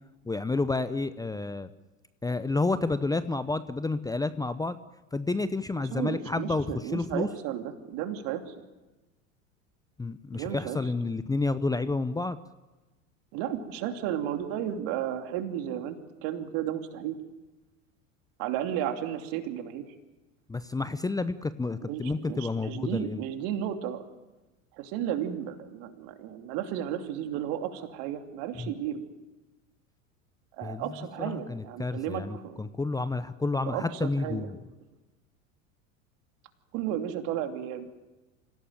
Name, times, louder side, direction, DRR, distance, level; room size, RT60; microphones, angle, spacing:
voice 1, 0.3-1.7 2.2-4.8 5.1-7.3 10.0-12.4 20.5-23.2 28.6-28.7 30.6-30.9 31.2-34.6, left 3 dB, 10° left, 13 dB, 0.8 m, -30 dB
voice 2, 5.9-8.5 10.3-10.8 13.3-17.1 18.4-19.9 21.8-24.0 24.8-29.0 30.5-32.6 33.7-34.5 36.7-37.8, right 10 dB, 55° right, 6 dB, 2.9 m, -33 dB
26.0 x 17.0 x 9.2 m, 1.1 s
hypercardioid pair, 85°, 40 cm